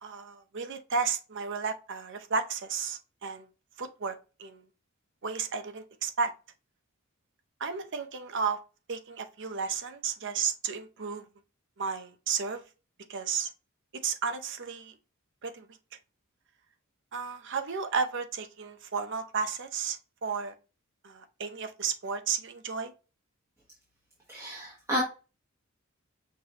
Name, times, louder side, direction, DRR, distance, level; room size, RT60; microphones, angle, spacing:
voice 1, 0.0-3.5 3.8-4.6 5.2-6.3 7.6-8.6 8.9-11.2 11.8-12.6 13.1-13.5 14.0-14.9 15.4-15.7 17.1-20.5 21.0-22.9, right 5 dB, 60° right, 0.7 m, -33 dB
voice 2, 24.3-25.0, equal, 15° right, 1.3 m, -31 dB
6.0 x 2.7 x 2.9 m
head